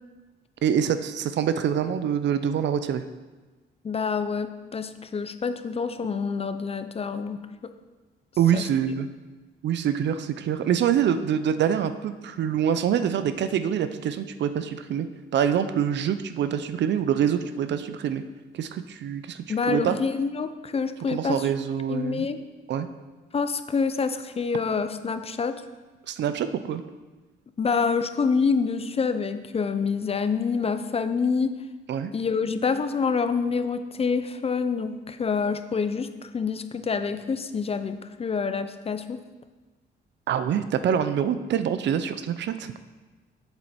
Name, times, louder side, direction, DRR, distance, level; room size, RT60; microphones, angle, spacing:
voice 1, 0.6-3.0 8.4-9.1 9.6-15.1 15.3-18.2 18.5-19.9 21.1-22.3 22.7-22.9 26.1-26.8 31.9-32.1 40.3-42.7, right 8 dB, 65° right, 11 dB, 0.6 m, -25 dB
voice 2, 3.8-7.4 8.5-8.6 19.5-21.5 21.9-22.4 23.3-25.6 27.6-31.5 32.1-39.2, left 5 dB, 30° left, 10 dB, 0.5 m, -27 dB
7.7 x 7.0 x 4.3 m, 1.3 s
cardioid pair, 90°, 20 cm